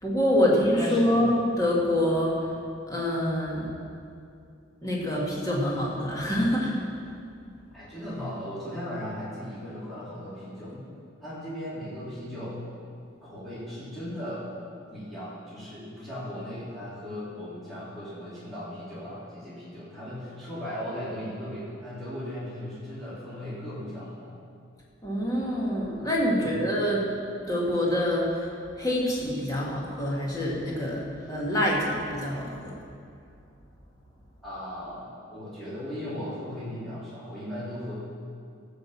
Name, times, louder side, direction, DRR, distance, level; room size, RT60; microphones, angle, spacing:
voice 1, 0.0-2.5 2.9-3.7 4.8-6.8 25.0-27.1 27.5-28.5 28.8-32.8, left 1 dB, 20° left, -5 dB, 2.0 m, -26 dB
voice 2, 0.8-1.2 7.7-10.8 11.2-12.6 13.2-14.5 14.9-24.4 26.4-26.5 34.4-37.9, equal, ahead, -11 dB, 3.2 m, -37 dB
14.5 x 5.2 x 7.4 m, 2.4 s
head